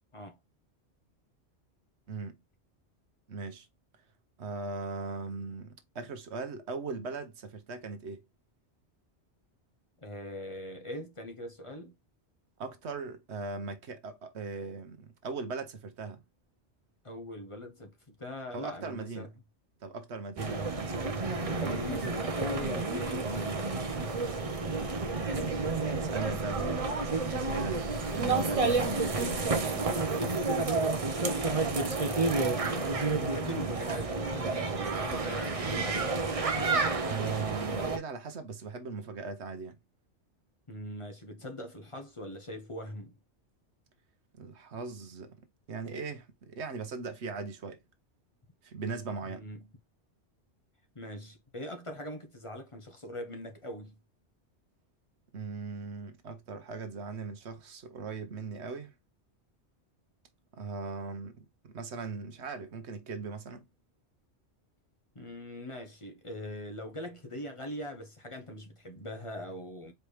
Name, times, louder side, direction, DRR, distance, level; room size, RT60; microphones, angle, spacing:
voice 1, 3.3-3.7 4.4-8.2 12.6-16.2 18.5-19.3 19.8-21.8 25.1-30.2 37.1-39.8 44.4-45.4 45.7-47.8 48.6-49.5 55.3-58.9 60.6-61.4 61.6-63.7, right 4 dB, 75° right, 1.2 m, -39 dB
voice 2, 10.0-11.9 17.0-19.3 21.5-23.7 30.6-32.9 33.2-36.1 40.7-43.1 49.2-49.7 50.9-54.0 65.1-69.9, left 1 dB, 30° left, 0.9 m, -42 dB
sound 1, 20.4-38.0, right 3 dB, 35° right, 0.8 m, -30 dB
4.6 x 3.2 x 3.2 m
omnidirectional pair, 1.2 m